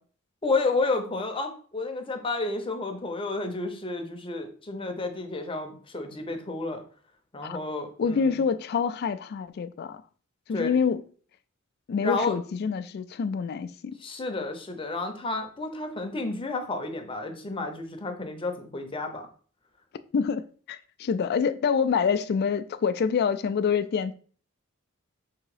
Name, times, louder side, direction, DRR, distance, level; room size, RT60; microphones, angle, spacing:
voice 1, 0.4-6.8 7.3-8.4 10.5-10.7 12.0-12.4 14.0-19.3, left 3 dB, 25° left, 0.7 m, -31 dB
voice 2, 8.0-10.0 10.5-11.0 11.9-13.9 20.1-24.1, left 6 dB, 50° left, 0.3 m, -26 dB
3.8 x 2.7 x 4.8 m
head